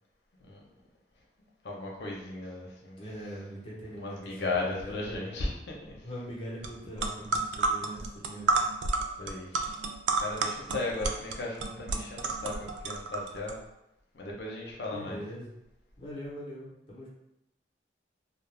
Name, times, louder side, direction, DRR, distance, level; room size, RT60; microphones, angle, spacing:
voice 1, 1.4-3.0 3.9-6.1 9.2-9.8 10.2-13.6 14.1-15.2, left 2 dB, 70° left, -2 dB, 0.6 m, -36 dB
voice 2, 3.0-5.2 6.0-8.7 14.9-15.5 16.0-17.1, equal, 30° left, -5 dB, 0.7 m, -42 dB
sound 1, 6.6-6.7 7.0-13.5, right 3 dB, 80° right, 0.3 m, -30 dB
2.4 x 2.1 x 3.1 m, 0.85 s
head